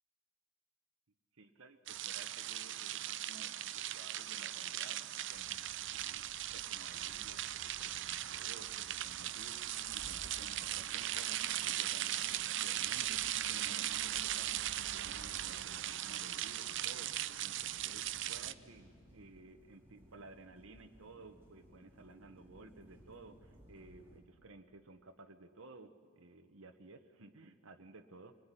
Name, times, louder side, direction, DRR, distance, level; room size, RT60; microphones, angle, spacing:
voice 1, 1.4-28.3, right 3 dB, 75° right, 6 dB, 1.2 m, -56 dB
sound 1, 1.9-18.5, right 12 dB, 55° right, 0.6 m, -39 dB
sound 2, 5.3-24.2, equal, 10° right, 4.0 m, -60 dB
27.5 x 20.0 x 10.0 m, 2.2 s
head